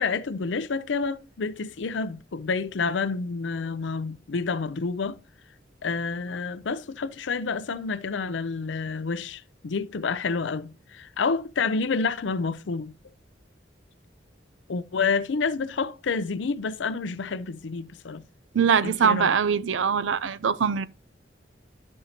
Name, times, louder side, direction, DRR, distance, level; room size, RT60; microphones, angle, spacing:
voice 1, 0.0-5.2 5.8-12.9 14.7-18.2 18.8-19.4, left 4 dB, 70° left, 0.5 m, -29 dB
voice 2, 18.5-20.9, right 6 dB, 80° right, 0.5 m, -22 dB
12.5 x 5.4 x 2.8 m
head